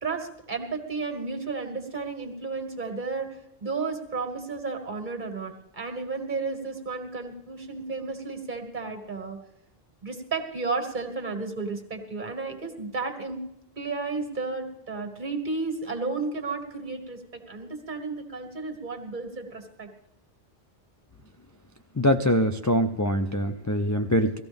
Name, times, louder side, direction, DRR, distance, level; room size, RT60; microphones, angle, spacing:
voice 1, 0.0-9.4 10.0-13.4 13.8-19.9, right 4 dB, 50° right, 3 dB, 1.9 m, -33 dB
voice 2, 22.0-24.4, equal, 25° left, 4 dB, 0.4 m, -23 dB
18.0 x 14.5 x 3.5 m, 0.83 s
omnidirectional pair, 1.1 m